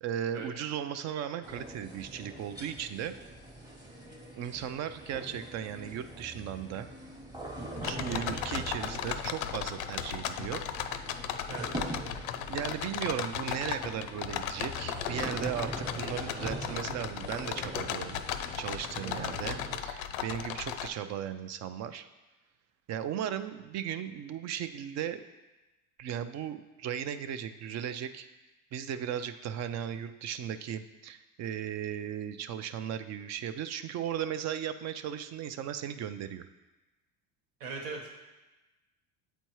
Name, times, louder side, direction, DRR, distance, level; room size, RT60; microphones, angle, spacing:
voice 1, 0.0-3.1 4.4-6.9 7.8-10.6 12.5-18.2 18.5-22.1 22.9-25.2 26.0-28.3 28.7-36.4, right 9 dB, 40° right, 11 dB, 0.4 m, -36 dB
sound 1, 1.4-19.8, right 1 dB, 10° right, 1.0 m, -43 dB
sound 2, 7.8-20.9, left 9 dB, 75° left, 0.5 m, -36 dB
voice 2, 19.0-19.3 37.6-38.1, right 4 dB, 75° right, 0 dB, 1.4 m, -39 dB
8.1 x 4.3 x 3.1 m, 1.1 s
hypercardioid pair, 85°, 43 cm